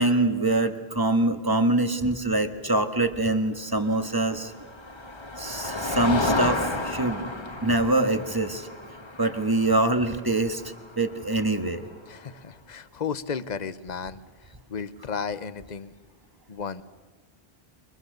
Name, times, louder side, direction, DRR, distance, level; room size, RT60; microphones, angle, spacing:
voice 1, 0.0-4.5 5.4-8.7 9.2-10.6 11.0-11.8, right 2 dB, 20° right, 7 dB, 1.5 m, -24 dB
Motor vehicle (road), 4.2-11.9, left 2 dB, 25° left, 1.4 m, -32 dB
voice 2, 12.1-14.2 14.7-15.9 16.5-16.8, left 6 dB, 45° left, 14 dB, 1.0 m, -33 dB
28.0 x 24.0 x 6.7 m, 1.3 s
omnidirectional pair, 1.0 m